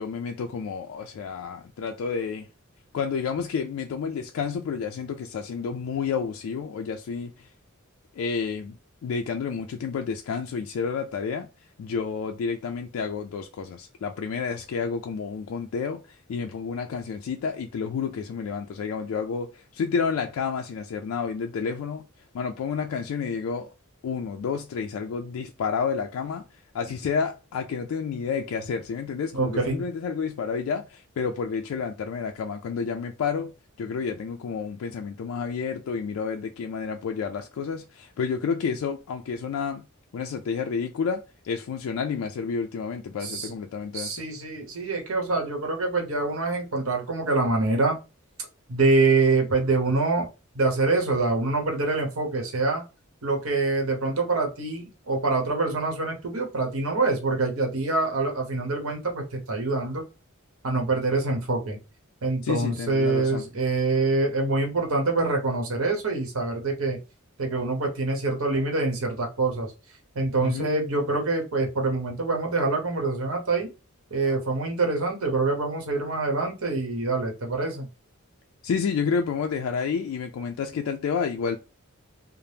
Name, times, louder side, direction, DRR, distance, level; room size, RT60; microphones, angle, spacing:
voice 1, 0.0-2.5 2.9-7.5 8.2-8.8 9.0-11.5 11.8-22.0 22.3-23.7 24.0-26.4 26.7-33.5 33.8-39.8 40.1-44.2 62.4-63.4 70.4-70.7 78.6-81.6, left 6 dB, 70° left, 0.3 m, -30 dB
voice 2, 29.3-29.8 43.2-43.5 43.9-48.0 48.7-50.3 50.5-52.8 53.2-60.1 60.6-61.8 62.2-67.0 67.4-69.7 70.1-73.7 74.1-77.9, right 3 dB, 75° right, 0.9 m, -25 dB
2.7 x 2.0 x 3.3 m
head